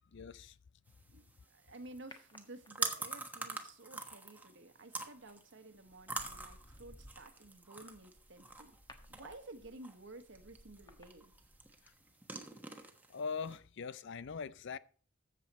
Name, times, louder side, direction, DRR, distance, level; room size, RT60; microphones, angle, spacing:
voice 1, 0.1-0.6 13.1-14.8, left 5 dB, 65° left, 0.5 m, -41 dB
sound 1, 0.9-13.6, right 3 dB, 10° right, 1.2 m, -46 dB
voice 2, 1.1-8.8 9.1-11.3, right 2 dB, 65° right, 1.4 m, -53 dB
sound 2, 2.1-3.1 5.0-5.3 5.8-12.0 12.2-12.3, left 1 dB, 20° left, 1.3 m, -59 dB
13.5 x 7.5 x 4.2 m
head